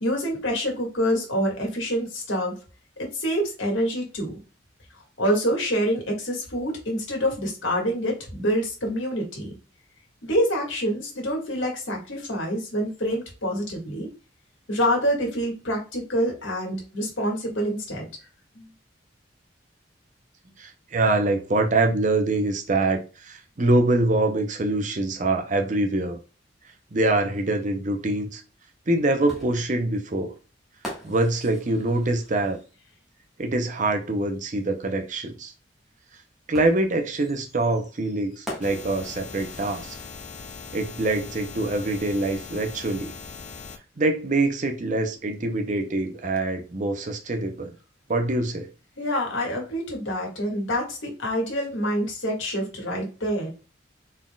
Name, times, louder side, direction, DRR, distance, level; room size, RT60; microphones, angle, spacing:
voice 1, 0.0-2.5 3.0-4.4 5.2-9.5 10.2-14.1 14.7-18.1 18.6-18.7 49.0-53.5, equal, 85° left, 1.7 m, -26 dB
voice 2, 20.6-26.2 26.9-28.4 28.9-30.3 31.0-32.6 33.4-35.5 36.5-39.9 40.7-43.1 44.0-47.7 48.1-48.7, right 2 dB, 40° right, 0.7 m, -24 dB
sound 1, 29.3-32.9 34.4-34.5 36.5-40.4, equal, ahead, 1.3 m, -42 dB
sound 2, 38.6-43.8, left 5 dB, 40° left, 0.5 m, -40 dB
4.2 x 3.8 x 2.2 m
head